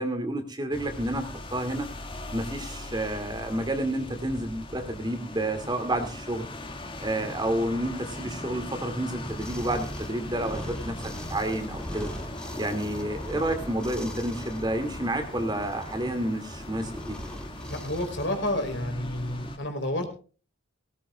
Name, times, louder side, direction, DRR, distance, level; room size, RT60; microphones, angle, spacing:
voice 1, 0.0-1.9 2.3-6.5 7.0-12.1 12.6-17.2, right 1 dB, 20° right, 7 dB, 2.4 m, -30 dB
sound 1, 0.7-19.6, left 1 dB, 25° left, 2.1 m, -40 dB
sound 2, 9.2-18.3, equal, 5° left, 2.5 m, -40 dB
voice 2, 17.7-20.1, left 1 dB, 60° left, 6 dB, 3.9 m, -30 dB
18.5 x 18.0 x 2.4 m, 0.37 s
head